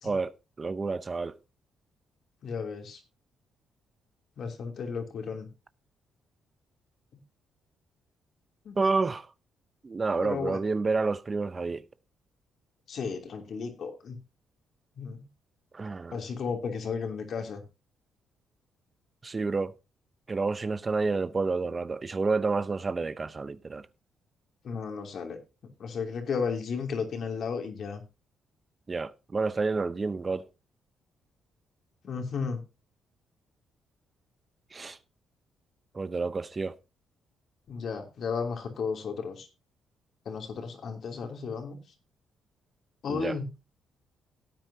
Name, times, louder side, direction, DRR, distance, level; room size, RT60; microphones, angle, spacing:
voice 1, 0.0-1.4 8.8-9.3 9.8-11.8 15.7-16.2 19.2-19.7 20.3-23.8 28.9-30.5 34.7-35.0 35.9-36.8 43.1-43.4, right 4 dB, 30° right, 0.7 m, -29 dB
voice 2, 2.4-3.0 4.4-5.5 8.6-8.8 10.2-10.6 12.9-14.2 15.0-15.2 16.1-17.6 24.6-25.4 25.8-28.0 32.0-32.6 37.7-39.5 40.2-41.8 43.0-43.4, left 5 dB, 60° left, 2.9 m, -34 dB
17.5 x 9.1 x 2.7 m
cardioid pair, 90°, 0 cm